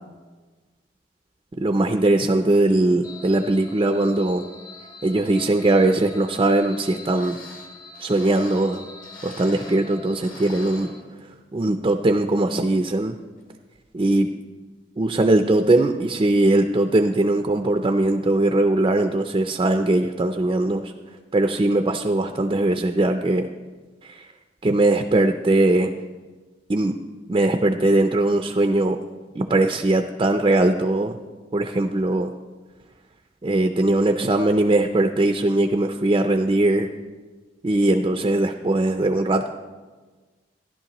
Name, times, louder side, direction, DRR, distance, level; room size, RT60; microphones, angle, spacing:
voice 1, 1.6-4.4 5.0-7.4 8.0-8.9 9.2-10.9 11.5-13.1 13.9-14.3 15.0-20.9 21.3-23.5 24.0-24.3 24.6-25.9 26.7-27.0 27.3-29.0 29.4-31.2 31.5-32.3 33.4-36.9 37.6-39.5, right 2 dB, 30° right, 5 dB, 0.4 m, -20 dB
sound 1, 3.0-11.0, left 2 dB, 20° left, 0.7 m, -44 dB
sound 2, 6.8-6.9 7.1-9.9 10.2-11.5 11.9-12.0 12.7-12.9 13.4-13.5, left 2 dB, 50° left, 1.4 m, -45 dB
14.5 x 11.5 x 3.0 m, 1.4 s
head